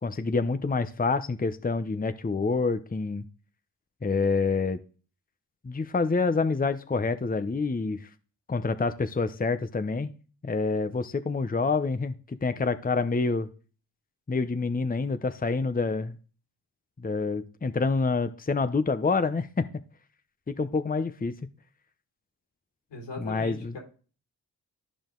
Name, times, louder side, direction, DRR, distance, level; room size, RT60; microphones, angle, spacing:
voice 1, 0.0-3.2 4.0-4.8 5.6-8.1 8.5-10.1 10.4-13.5 14.3-16.2 17.0-19.6 20.5-21.3 23.2-23.8, left 4 dB, 20° left, 10 dB, 0.9 m, -27 dB
voice 2, 22.9-23.8, left 3 dB, 90° left, 1 dB, 3.3 m, -39 dB
12.0 x 5.1 x 3.8 m, 0.37 s
cardioid pair, 50°, 42 cm